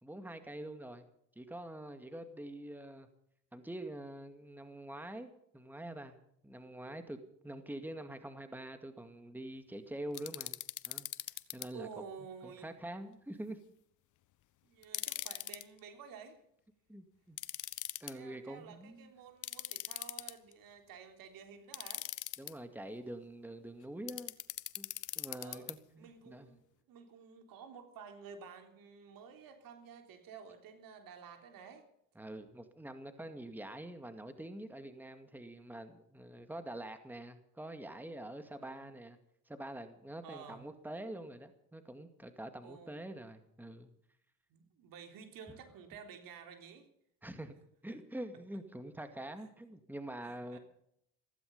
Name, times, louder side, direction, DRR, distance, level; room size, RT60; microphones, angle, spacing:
voice 1, 0.0-1.1 1.4-3.1 3.5-7.2 7.4-10.6 10.9-11.1 11.5-11.9 12.4-13.6 16.9-17.4 18.0-19.1 22.4-24.3 24.8-24.9 25.2-26.6 32.2-39.2 39.5-43.9 47.2-47.6 47.8-50.6, right 1 dB, 5° right, 8 dB, 2.1 m, -45 dB
sound 1, 10.1-11.7 14.8-15.6 17.4-18.1 19.4-20.5 21.7-22.5 24.1-25.7, left 13 dB, 55° left, 1.1 m, -41 dB
voice 2, 11.7-12.7 14.6-16.4 18.1-22.1 25.4-25.7 26.0-26.6 26.9-31.9 38.6-38.9 40.2-40.7 42.6-43.1 44.5-46.9 47.9-48.0 49.4-49.5 50.2-50.6, right 6 dB, 70° right, 6 dB, 3.6 m, -52 dB
15.5 x 15.0 x 5.4 m, 0.72 s
supercardioid pair, 85°, 36 cm